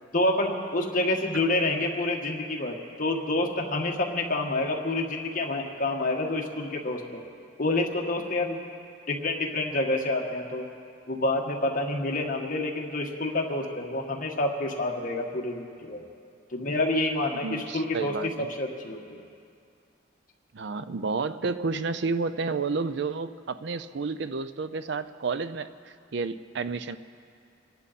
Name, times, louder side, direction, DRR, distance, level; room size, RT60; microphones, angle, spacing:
voice 1, 0.1-7.2 7.6-8.6 9.1-10.6 11.1-16.0 16.5-19.2, left 2 dB, 45° left, 1 dB, 1.6 m, -28 dB
voice 2, 17.4-18.5 20.5-27.0, right 4 dB, 60° right, 12 dB, 0.5 m, -31 dB
26.0 x 11.0 x 4.2 m, 2.4 s
head